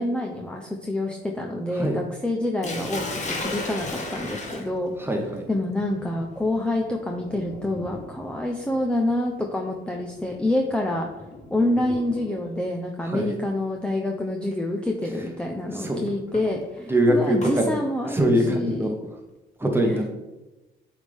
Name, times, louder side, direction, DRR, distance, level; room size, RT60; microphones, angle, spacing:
voice 1, 0.0-4.9 5.5-11.1 11.5-18.9 19.8-20.0, left 1 dB, 5° left, 1 dB, 0.7 m, -27 dB
Sink (filling or washing), 2.6-12.6 13.7-14.0 14.5-14.6 16.1-17.6, left 2 dB, 35° left, 1.3 m, -37 dB
voice 2, 5.0-5.5 13.0-13.4 15.7-16.0 16.9-17.8 18.0-18.9 19.6-20.1, right 1 dB, 10° right, 2 dB, 1.2 m, -23 dB
8.1 x 3.6 x 3.5 m, 1.1 s
cardioid pair, 90°, 20 cm